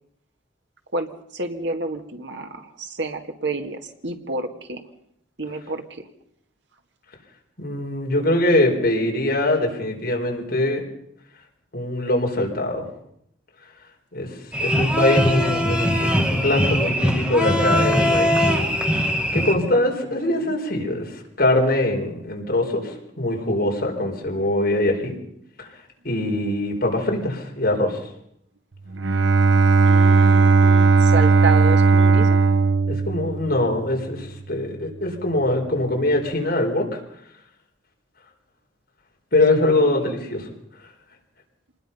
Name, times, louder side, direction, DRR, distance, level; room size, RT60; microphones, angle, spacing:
voice 1, 0.9-4.8 5.4-6.0 14.7-15.2 17.6-17.7 19.6-20.6 24.0-24.6 29.4-32.4 39.6-40.2, right 3 dB, 65° right, 5 dB, 2.0 m, -31 dB
voice 2, 7.6-10.8 11.7-12.9 14.1-14.3 14.6-18.4 18.9-25.2 25.6-25.7 26.0-28.0 32.9-37.0 39.3-40.5, left 1 dB, 50° left, 1 dB, 4.7 m, -22 dB
sound 1, 14.5-19.5, equal, 5° right, 1.9 m, -21 dB
Bowed string instrument, 28.9-33.9, right 4 dB, 85° right, 0.9 m, -16 dB
26.0 x 20.0 x 5.6 m, 0.74 s
head